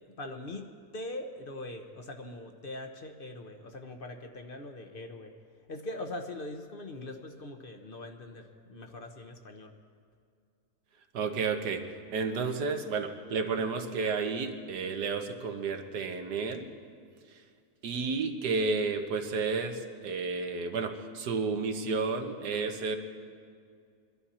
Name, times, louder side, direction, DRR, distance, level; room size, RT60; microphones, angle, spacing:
voice 1, 0.2-0.7 0.9-5.3 5.7-9.8, left 2 dB, 40° left, 5 dB, 0.9 m, -42 dB
voice 2, 11.1-11.8 12.1-16.7 17.8-23.0, right 4 dB, 90° right, 5 dB, 1.6 m, -31 dB
23.5 x 12.0 x 4.3 m, 2.2 s
omnidirectional pair, 1.7 m